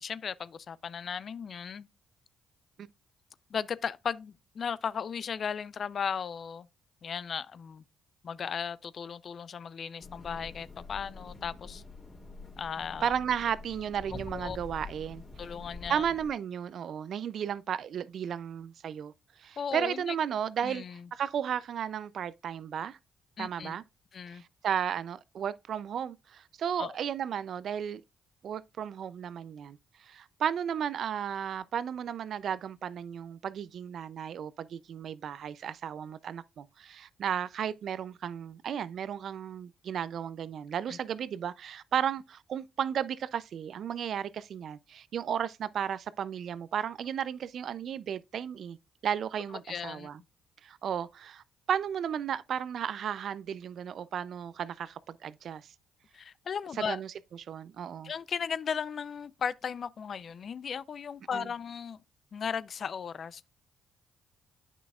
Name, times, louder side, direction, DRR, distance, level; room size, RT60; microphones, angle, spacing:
voice 1, 0.0-1.9 3.5-6.7 7.0-7.8 8.2-11.8 12.6-13.1 14.3-14.6 15.4-16.1 19.6-20.1 20.6-21.1 23.4-23.8 24.1-24.4 26.8-27.0 40.9-41.0 49.7-50.1 56.1-57.0 58.0-62.0 62.3-63.5, left 7 dB, 55° left, 0.4 m, -36 dB
sound 1, 10.0-16.3, left 3 dB, 30° left, 2.7 m, -46 dB
voice 2, 13.0-15.2 15.9-19.1 19.4-20.8 21.1-23.0 23.4-23.8 24.3-28.0 28.4-48.8 49.0-50.2 50.6-55.7 56.8-58.1 61.3-61.5, right 8 dB, 65° right, 0.4 m, -34 dB
9.2 x 6.0 x 2.4 m
supercardioid pair, 55°, 0 cm